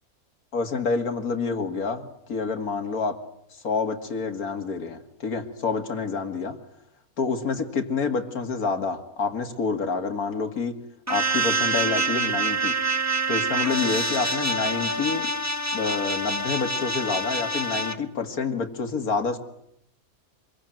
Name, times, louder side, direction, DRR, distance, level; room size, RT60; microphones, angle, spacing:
voice 1, 0.5-3.2 3.5-6.6 7.2-10.8 11.1-12.8 13.3-15.3 15.7-19.4, left 4 dB, 85° left, 7 dB, 2.6 m, -28 dB
sound 1, 11.1-18.0, right 2 dB, 10° right, 1.3 m, -26 dB
26.0 x 23.0 x 9.2 m, 0.76 s
omnidirectional pair, 1.5 m